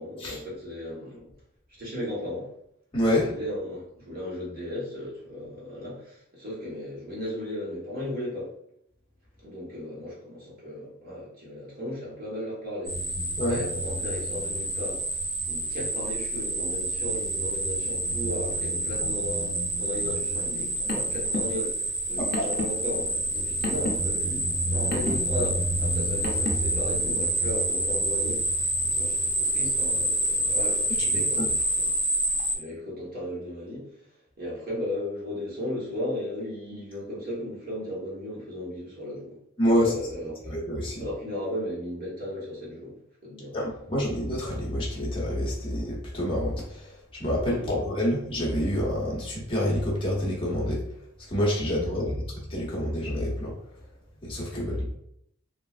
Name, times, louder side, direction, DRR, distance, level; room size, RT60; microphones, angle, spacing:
voice 1, 0.0-1.3 1.8-2.5 3.1-8.5 9.4-13.0 13.4-15.0 15.4-31.9 32.5-34.1 34.4-39.4 39.7-40.5 41.0-43.5 47.5-47.8 51.8-52.3 54.5-54.9, left 1 dB, 45° right, -6 dB, 1.2 m, -36 dB
voice 2, 2.9-3.3 13.4-13.6 22.2-22.3 31.1-31.4 39.6-39.9 40.4-41.1 43.5-50.8 51.3-53.5 54.2-55.0, equal, 25° left, -5 dB, 0.9 m, -27 dB
sound 1, 12.9-32.5, right 1 dB, 30° right, 0.8 m, -28 dB
Car, 20.5-26.8, left 1 dB, 50° left, 0.6 m, -35 dB
3.2 x 2.4 x 2.4 m, 0.72 s
head